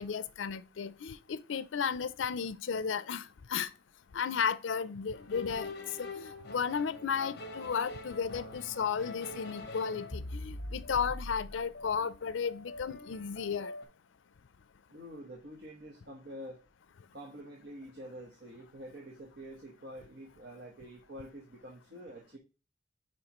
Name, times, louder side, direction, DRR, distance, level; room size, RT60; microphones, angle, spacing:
voice 1, 0.0-3.7 4.1-5.7 6.0-13.7, left 6 dB, 85° left, 0.5 m, -34 dB
sound 1, 5.1-13.9, left 2 dB, 55° left, 1.1 m, -44 dB
voice 2, 14.9-16.6 17.1-22.4, equal, 60° right, 1.2 m, -47 dB
8.6 x 4.7 x 3.0 m
head